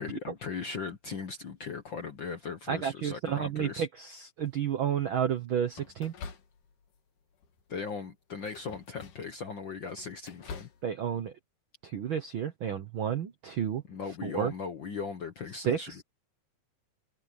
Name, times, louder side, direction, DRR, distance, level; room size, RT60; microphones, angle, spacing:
voice 1, 0.0-3.9 7.7-10.7 13.9-16.0, left 5 dB, 55° left, 1.3 m, -38 dB
voice 2, 2.7-6.1 10.8-11.3 11.8-13.8 14.2-14.5 15.5-16.0, right 8 dB, 70° right, 1.2 m, -31 dB
sound 1, 4.4-4.8 5.7-7.0 7.3-7.7 8.3-9.4 9.8-10.8, left 5 dB, 90° left, 3.8 m, -47 dB
omnidirectional pair, 3.6 m